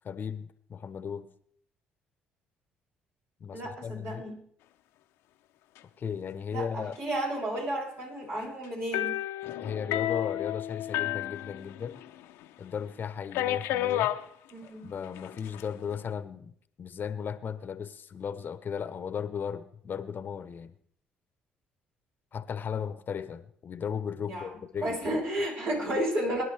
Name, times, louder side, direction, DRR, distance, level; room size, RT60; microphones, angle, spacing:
voice 1, 0.0-1.3 3.4-4.2 6.0-7.0 9.5-12.0 12.6-14.1 14.6-20.7 22.3-25.0, left 7 dB, 50° left, 12 dB, 1.0 m, -36 dB
voice 2, 3.5-4.4 6.5-9.1 14.5-14.9 24.2-24.5 24.8-26.4, right 1 dB, 60° right, -3 dB, 7.5 m, -32 dB
sound 1, 8.9-12.1 12.4-12.5 13.3-14.2 15.2-15.6, left 13 dB, 75° left, 0.9 m, -31 dB
23.5 x 11.0 x 3.5 m, 0.65 s
hypercardioid pair, 55°, 4 cm